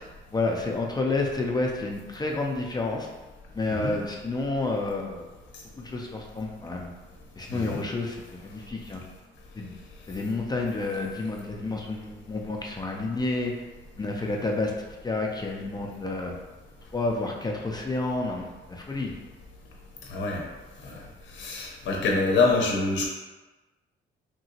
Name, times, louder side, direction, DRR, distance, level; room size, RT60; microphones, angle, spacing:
voice 1, 0.3-3.1 3.5-5.3 5.8-6.9 7.4-9.0 9.5-9.7 10.1-13.5 14.0-14.7 15.0-16.3 16.9-19.1, left 2 dB, 20° left, 0 dB, 0.4 m, -30 dB
voice 2, 7.5-7.8 20.1-20.4 20.8-21.0 21.3-23.1, left 3 dB, 65° left, -1 dB, 0.6 m, -25 dB
2.9 x 2.7 x 2.8 m, 1.2 s
cardioid pair, 90°, 20 cm